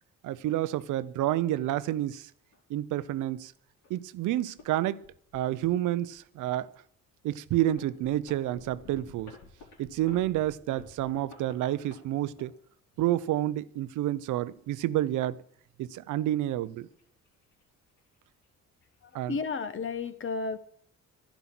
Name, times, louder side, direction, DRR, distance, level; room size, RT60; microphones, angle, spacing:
voice 1, 0.2-2.3 2.7-3.5 3.9-5.0 5.3-6.7 7.2-9.3 9.8-12.5 13.0-15.4 15.8-16.9 19.1-19.4, right 13 dB, 80° right, 0.7 m, -29 dB
sound 1, 0.8-0.9 1.7-1.9 2.5-2.6 3.0-3.1 3.8-4.0 4.3-4.7 5.0-6.3 6.8-6.9 7.4-13.0 13.8-14.8 16.5-17.6 17.9-18.2 18.4-18.5 18.8-19.2, left 3 dB, 80° left, 4.3 m, -52 dB
voice 2, 19.0-20.6, left 4 dB, 40° left, 1.1 m, -33 dB
11.5 x 10.5 x 6.0 m
cardioid pair, 90°, 30 cm